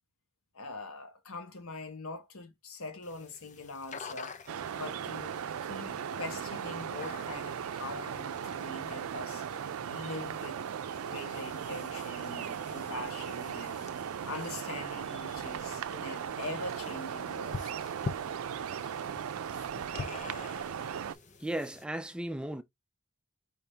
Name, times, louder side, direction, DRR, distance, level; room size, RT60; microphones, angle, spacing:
voice 1, 0.5-4.3 4.7-9.5 9.9-13.8 14.2-17.6, left 2 dB, 80° left, 1.3 m, -43 dB
sound 1, 3.0-21.8, left 4 dB, 35° left, 0.6 m, -48 dB
sound 2, 4.5-21.1, right 8 dB, 90° right, 0.4 m, -37 dB
voice 2, 21.4-22.6, right 1 dB, 5° right, 0.4 m, -35 dB
4.8 x 3.5 x 2.8 m
head